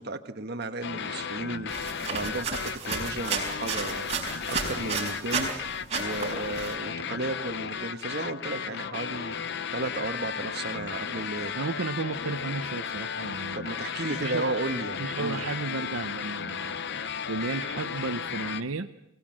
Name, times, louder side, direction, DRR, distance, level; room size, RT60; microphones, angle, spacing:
voice 1, 0.0-5.5 5.9-9.4 9.7-11.5 13.5-15.4, right 2 dB, 50° right, 6 dB, 1.4 m, -34 dB
sound 1, 0.8-18.6, left 7 dB, 55° left, 0.7 m, -34 dB
sound 2, 1.7-5.6 5.9-6.7, right 4 dB, 30° right, 5.6 m, -32 dB
voice 2, 11.5-13.6 14.2-14.6 15.0-16.8 17.3-18.9, right 3 dB, 85° right, 8 dB, 0.8 m, -33 dB
23.5 x 18.0 x 7.7 m, 0.84 s
head